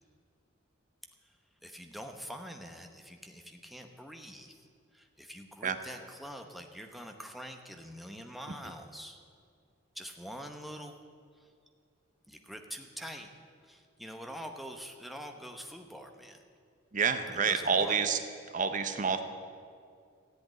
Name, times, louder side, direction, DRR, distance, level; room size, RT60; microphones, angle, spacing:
voice 1, 1.6-4.5 4.9-9.2 9.9-10.9 12.3-13.3 13.6-16.4 17.4-18.0, equal, ahead, 4 dB, 0.9 m, -45 dB
voice 2, 16.9-18.2 18.5-19.2, right 5 dB, 40° right, 9 dB, 0.8 m, -28 dB
14.0 x 8.0 x 9.2 m, 2.3 s
head